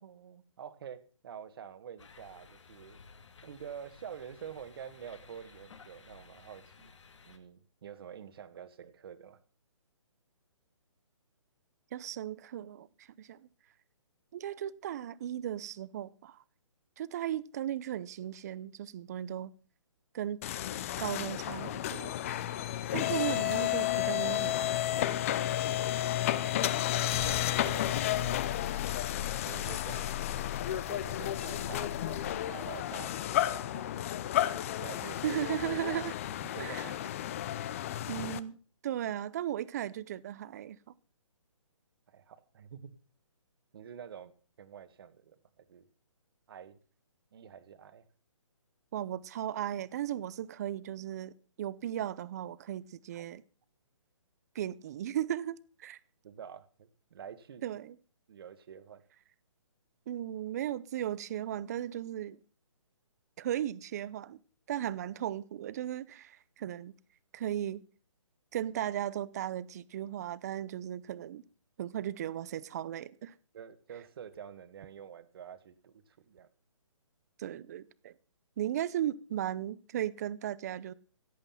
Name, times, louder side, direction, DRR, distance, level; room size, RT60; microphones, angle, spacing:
voice 1, 0.0-3.0 3.4-6.9 7.3-9.4 27.2-28.4 29.0-33.9 34.5-35.2 36.5-37.0 42.1-43.0 43.7-45.9 46.5-46.8 47.3-48.0 53.1-53.3 56.2-57.6 58.3-59.0 73.5-76.5, right 8 dB, 45° right, 1.7 m, -48 dB
sound 1, 2.0-7.4, left 5 dB, 65° left, 2.6 m, -56 dB
voice 2, 11.9-13.4 14.3-16.4 17.0-19.5 20.1-20.4 21.0-22.1 22.9-25.1 25.5-25.8 27.1-27.3 35.2-36.2 36.6-36.9 38.1-38.6 38.8-40.8 48.9-53.4 54.5-56.0 57.6-58.0 60.1-62.4 63.4-64.4 64.7-67.0 67.3-67.8 68.5-71.4 71.8-73.3 77.4-78.1 78.6-80.9, right 11 dB, 30° right, 0.6 m, -36 dB
sound 2, 20.4-38.4, left 12 dB, 25° left, 0.6 m, -32 dB
16.5 x 8.6 x 5.8 m
hypercardioid pair, 160°, 17 cm